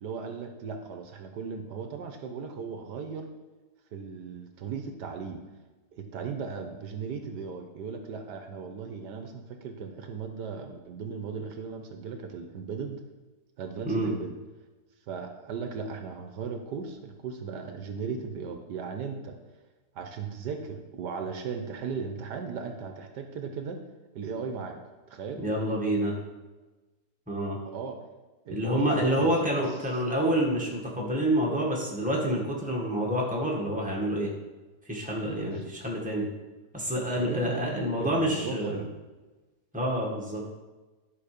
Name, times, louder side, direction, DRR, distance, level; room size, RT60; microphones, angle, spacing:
voice 1, 0.0-3.3 3.9-5.4 5.9-13.0 13.6-14.4 15.1-19.4 19.9-23.8 24.1-24.8 25.1-25.4 27.6-28.0 28.4-29.9 35.5-35.7 37.2-38.9, right 5 dB, 75° right, 5 dB, 1.4 m, -37 dB
voice 2, 25.4-26.1 27.3-27.6 28.5-34.3 34.9-36.3 36.7-38.8 39.7-40.4, equal, 5° right, -2 dB, 1.7 m, -28 dB
11.0 x 5.3 x 5.1 m, 1.2 s
omnidirectional pair, 1.9 m